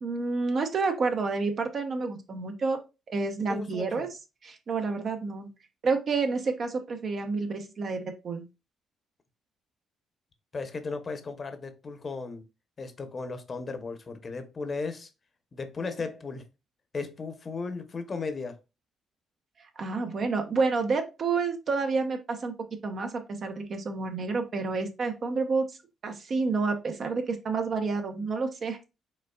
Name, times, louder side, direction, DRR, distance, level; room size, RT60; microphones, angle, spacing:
voice 1, 0.0-2.8 3.1-4.1 4.4-5.5 5.8-8.4 19.8-22.5 22.8-25.7 26.0-28.8, right 4 dB, 50° right, 0.9 m, -29 dB
voice 2, 3.5-4.1 10.5-12.4 12.8-15.1 15.5-16.5 16.9-18.6, left 4 dB, 40° left, 0.8 m, -36 dB
5.4 x 3.6 x 2.3 m
cardioid pair, 90°, 0 cm